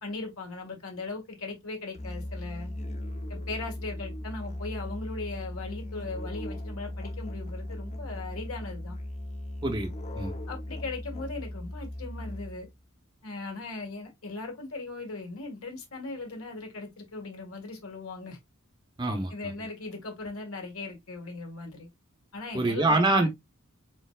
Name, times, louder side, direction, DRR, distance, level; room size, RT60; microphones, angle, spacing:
voice 1, 0.0-2.7 3.3-9.0 10.5-12.7 13.2-18.4 19.3-21.9 22.3-23.3, left 3 dB, 75° left, 1.7 m, -38 dB
Musical instrument, 1.9-12.7, left 1 dB, 30° left, 0.6 m, -38 dB
voice 2, 19.0-19.3 22.5-23.3, right 2 dB, 20° right, 0.8 m, -24 dB
4.4 x 4.4 x 2.3 m
head